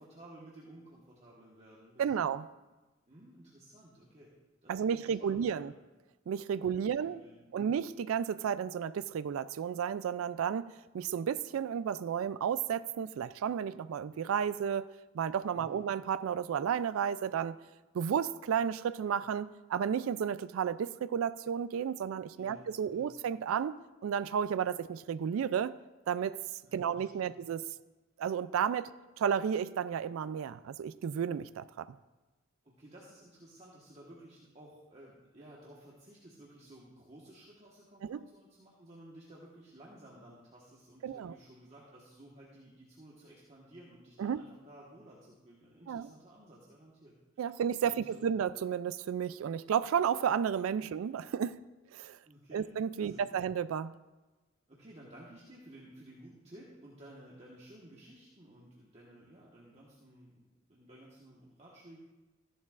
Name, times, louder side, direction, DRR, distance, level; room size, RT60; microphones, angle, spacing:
voice 1, 0.0-2.2 3.1-4.3 4.6-5.7 6.5-7.7 15.5-15.8 22.4-22.6 22.9-23.1 26.6-27.4 32.6-47.6 47.8-48.3 50.8-50.9 52.2-53.4 54.7-62.0, right 1 dB, 30° right, -5 dB, 1.4 m, -55 dB
voice 2, 2.0-2.5 4.7-5.7 6.3-7.2 7.5-10.7 10.9-14.9 15.1-17.6 17.9-25.8 26.1-26.4 26.7-27.6 28.2-31.9 38.0-38.2 41.0-41.3 44.2-44.4 45.9-46.1 47.4-51.6 51.9-52.2 52.5-53.9, right 7 dB, 80° right, 15 dB, 0.3 m, -32 dB
14.0 x 11.0 x 2.5 m, 1.1 s
head